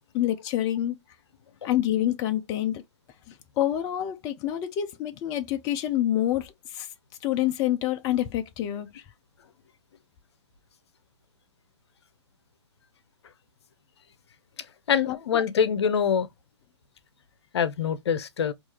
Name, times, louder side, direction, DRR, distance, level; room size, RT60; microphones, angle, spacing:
voice 1, 0.1-1.0 1.6-2.8 3.3-6.9 7.2-9.0 15.0-15.2, left 12 dB, 25° left, 0.4 m, -27 dB
voice 2, 14.9-16.3 17.5-18.5, left 7 dB, 65° left, 0.7 m, -24 dB
4.6 x 2.5 x 2.8 m
hypercardioid pair, 125°, 15 cm